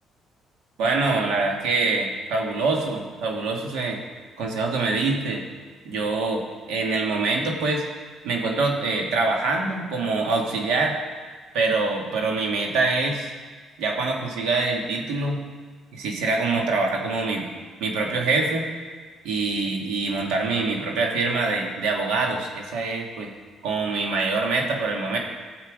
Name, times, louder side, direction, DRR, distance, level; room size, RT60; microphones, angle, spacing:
voice 1, 0.8-4.0 4.4-5.4 5.8-7.8 8.2-11.0 11.5-13.3 13.8-15.4 15.9-17.4 17.8-18.6 19.2-23.3 23.6-25.2, right 3 dB, 85° right, 0 dB, 2.0 m, -24 dB
15.0 x 7.3 x 5.0 m, 1.5 s
cardioid pair, 110°, 0 cm